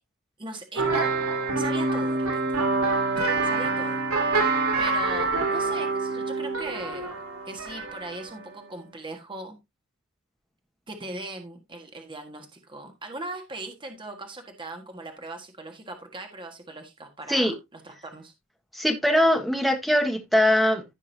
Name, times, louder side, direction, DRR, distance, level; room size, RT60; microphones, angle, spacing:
voice 1, 0.4-0.8 1.6-2.6 3.4-4.0 4.8-7.2 7.4-9.6 10.9-18.3, right 2 dB, 25° right, 4 dB, 1.6 m, -39 dB
sound 1, 0.8-8.4, right 3 dB, 90° right, 3.2 m, -26 dB
voice 2, 18.7-20.8, left 1 dB, ahead, 3 dB, 1.6 m, -21 dB
15.5 x 5.4 x 2.7 m, 0.21 s
head